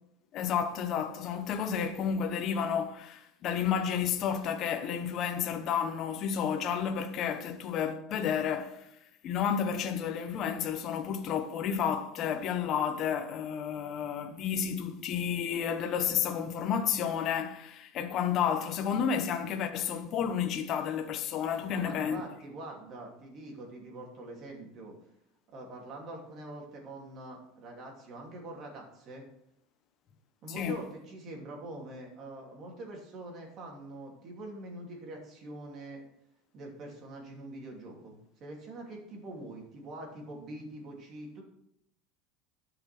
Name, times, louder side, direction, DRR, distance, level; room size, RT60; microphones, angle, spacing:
voice 1, 0.3-8.9 9.2-22.2 30.6-30.8, left 7 dB, 40° left, 1.1 m, -31 dB
voice 2, 21.7-24.9 25.5-29.2 30.4-36.0 36.5-41.4, right 2 dB, 35° right, 2.8 m, -44 dB
12.0 x 5.9 x 6.0 m
supercardioid pair, 155°, 0 cm